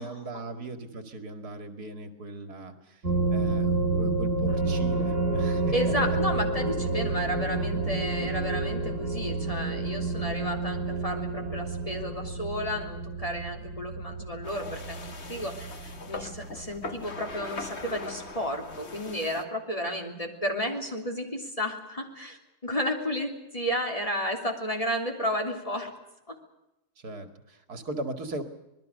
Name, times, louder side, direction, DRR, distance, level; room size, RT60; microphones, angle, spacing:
voice 1, 0.0-3.0 3.3-5.6 6.1-6.5 27.0-28.4, right 2 dB, 75° right, 8 dB, 2.7 m, -39 dB
sound 1, 3.0-18.1, right 3 dB, 50° right, 2.5 m, -30 dB
sound 2, 4.5-12.2, right 1 dB, 25° right, 7.2 m, -39 dB
voice 2, 5.7-25.9 26.3-26.4, equal, 20° left, 3 dB, 3.5 m, -32 dB
sound 3, 14.4-19.4, left 3 dB, 45° left, 1.9 m, -41 dB
26.5 x 20.5 x 6.6 m, 0.92 s
omnidirectional pair, 1.6 m